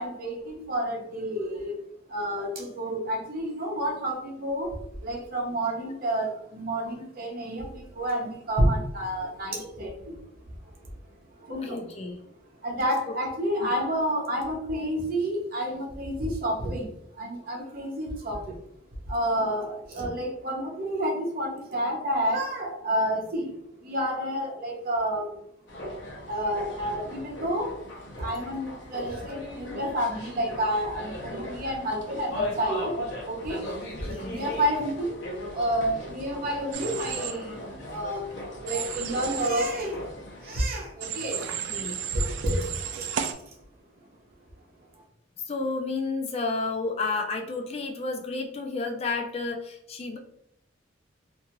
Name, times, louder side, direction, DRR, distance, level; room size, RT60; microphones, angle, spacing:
voice 1, 0.0-1.8 2.1-10.2 10.6-10.8 11.4-11.9 12.6-18.6 19.0-25.4 26.3-27.8 28.2-33.7 34.0-35.2 35.5-37.6 37.9-38.3 38.6-40.1 40.4-41.5 42.1-43.6, equal, 50° right, 0 dB, 0.8 m, -30 dB
voice 2, 11.5-12.2 13.6-13.7 34.1-34.4 41.7-42.0 45.5-50.2, left 3 dB, 35° left, 3 dB, 0.4 m, -31 dB
sound 1, 25.7-40.6, left 1 dB, 65° left, 0.8 m, -38 dB
Human voice / Train, 36.7-37.3 38.7-39.5 41.0-43.3, right 8 dB, 70° right, 0.3 m, -33 dB
2.6 x 2.4 x 2.9 m, 0.74 s
head